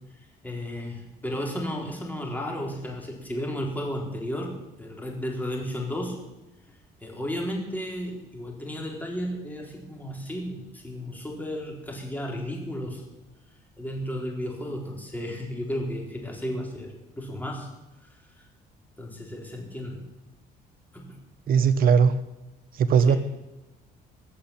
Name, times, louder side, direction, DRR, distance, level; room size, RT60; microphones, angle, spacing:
voice 1, 0.4-4.5 4.8-6.2 7.0-13.0 13.8-17.7 18.4-18.5 19.0-20.0 20.9-21.1 23.0-23.2, equal, 10° left, 0 dB, 4.1 m, -33 dB
voice 2, 21.5-22.1 22.8-23.2, right 6 dB, 60° right, 10 dB, 1.2 m, -18 dB
19.5 x 6.7 x 8.7 m, 1.0 s
cardioid pair, 110°, 17 cm